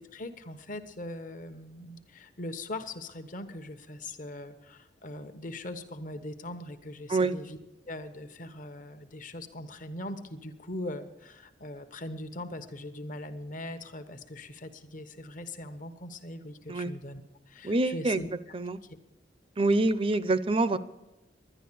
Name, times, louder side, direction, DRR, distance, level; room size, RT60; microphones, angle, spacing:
voice 1, 0.0-7.6 7.9-17.2 17.5-18.3, left 1 dB, 45° left, 9 dB, 1.1 m, -41 dB
voice 2, 17.6-18.2 18.5-18.8 19.6-20.8, right 2 dB, 30° right, 15 dB, 0.6 m, -26 dB
11.5 x 10.5 x 8.5 m, 1.0 s
head